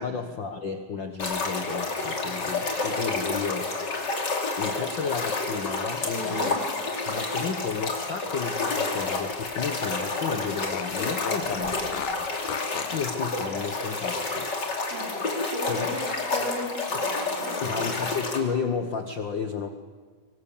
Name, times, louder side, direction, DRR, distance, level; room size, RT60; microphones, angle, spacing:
voice 1, 0.0-3.7 4.6-6.6 7.1-11.7 12.2-14.4 15.7-16.0 16.9-17.0 17.6-19.7, left 6 dB, 60° left, 6 dB, 1.2 m, -32 dB
sound 1, 1.2-18.4, left 3 dB, 30° left, 3.1 m, -29 dB
voice 2, 6.1-6.6 11.3-11.9 14.9-15.2 15.5-18.0, right 1 dB, 80° right, 2 dB, 5.5 m, -36 dB
Fart, 7.7-9.8 10.1-10.2 10.7-13.1, left 11 dB, 80° left, 2.5 m, -38 dB
25.0 x 23.5 x 7.2 m, 1.5 s
omnidirectional pair, 3.9 m